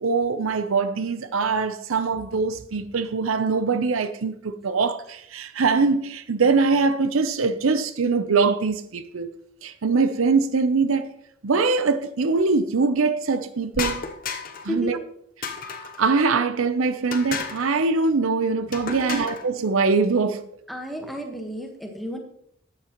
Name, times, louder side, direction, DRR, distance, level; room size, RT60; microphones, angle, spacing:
voice 1, 0.0-9.3 9.6-11.1 11.4-14.0 14.6-15.0 16.0-20.4, right 4 dB, 80° right, 0.6 m, -22 dB
sound 1, 13.7-14.7 15.4-16.0 17.1-17.7 18.7-19.5, left 5 dB, 40° left, 0.8 m, -32 dB
voice 2, 18.9-19.3 20.7-22.2, equal, ahead, 1.2 m, -32 dB
12.0 x 8.7 x 3.0 m
head